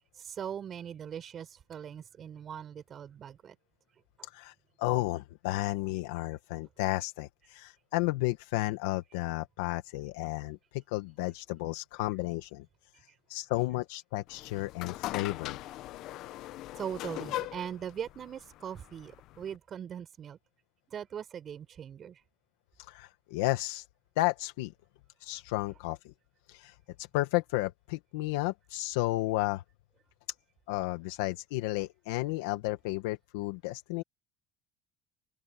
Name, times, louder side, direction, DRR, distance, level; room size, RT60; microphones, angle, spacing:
voice 1, 0.2-3.6 16.7-20.4 20.9-22.2, right 8 dB, 45° right, 6.1 m, -40 dB
voice 2, 4.2-12.6 13.3-15.6 22.8-23.8 24.2-24.7 25.2-26.1 26.5-29.6 30.7-34.0, left 19 dB, 90° left, 1.2 m, -33 dB
sound 1, 14.3-19.6, left 15 dB, 70° left, 0.9 m, -40 dB
open air
supercardioid pair, 85°, 0 cm